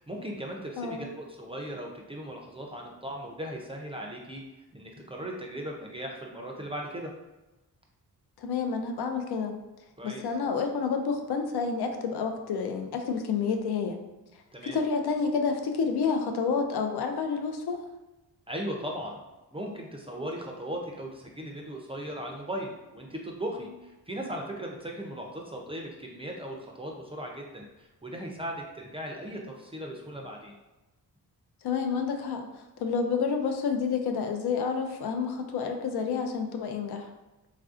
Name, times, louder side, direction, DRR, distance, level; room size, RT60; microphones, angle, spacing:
voice 1, 0.0-4.4 4.7-7.1 10.0-10.3 14.5-14.8 18.5-19.2 19.5-30.5, right 1 dB, 15° right, 0 dB, 0.4 m, -38 dB
voice 2, 0.8-1.1 8.4-9.6 10.0-14.0 14.6-17.8 31.6-37.1, left 5 dB, 80° left, 4 dB, 0.5 m, -29 dB
3.2 x 2.5 x 2.4 m, 1.0 s
wide cardioid pair, 100°, 38 cm